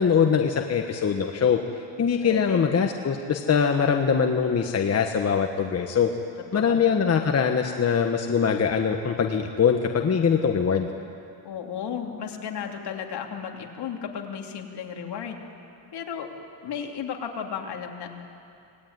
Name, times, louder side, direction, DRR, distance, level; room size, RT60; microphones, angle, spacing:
voice 1, 0.0-1.6 2.0-6.1 6.5-10.9, left 6 dB, 30° left, 4 dB, 1.4 m, -22 dB
voice 2, 2.2-2.7 6.6-6.8 11.4-15.4 15.9-16.3 16.6-18.2, left 7 dB, 55° left, 2 dB, 3.1 m, -34 dB
26.5 x 19.0 x 9.5 m, 2.5 s
cardioid pair, 125°, 47 cm